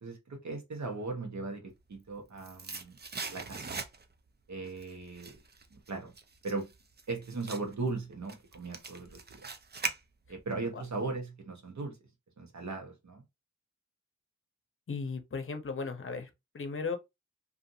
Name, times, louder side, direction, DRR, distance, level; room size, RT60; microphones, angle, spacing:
voice 1, 0.0-3.0 3.3-3.8 4.5-5.4 5.7-6.1 6.4-6.7 7.1-9.5 10.3-12.0 12.4-13.2, right 3 dB, 65° right, 1.0 m, -38 dB
sound 1, 1.9-4.3 4.6-10.5 10.8-10.9, right 4 dB, 35° right, 0.5 m, -41 dB
voice 2, 14.9-16.3 16.5-17.0, left 4 dB, 45° left, 0.7 m, -36 dB
2.5 x 2.5 x 2.7 m
cardioid pair, 55°, 30 cm